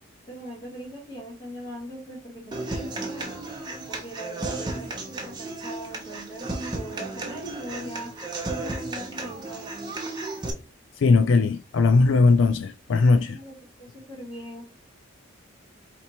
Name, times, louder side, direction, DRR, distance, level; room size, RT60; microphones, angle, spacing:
voice 1, 0.3-3.3 3.9-8.1 8.6-10.0 13.3-14.6, right 1 dB, 20° left, 1.9 m, -40 dB
Human voice / Acoustic guitar, 2.5-10.5, right 2 dB, 20° right, 0.8 m, -34 dB
voice 2, 11.0-13.4, left 3 dB, 65° left, 0.4 m, -19 dB
4.2 x 2.9 x 4.2 m
head